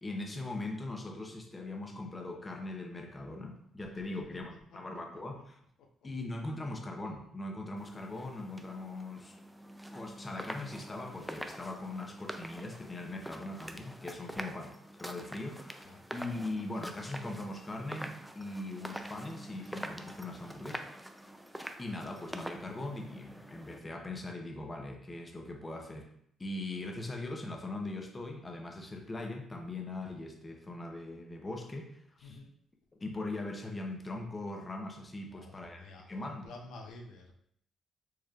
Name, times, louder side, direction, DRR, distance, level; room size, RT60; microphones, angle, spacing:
voice 1, 0.0-5.6 6.0-9.3 9.9-14.7 15.0-20.9 21.8-26.1 26.4-32.4 33.0-36.5, left 2 dB, 25° left, 2 dB, 0.7 m, -40 dB
sound 1, 7.8-23.8, equal, 5° right, 0.3 m, -45 dB
voice 2, 32.2-32.5 35.2-37.4, left 2 dB, 85° left, 2 dB, 0.6 m, -50 dB
4.6 x 3.2 x 2.4 m, 0.66 s
cardioid pair, 90°, 0 cm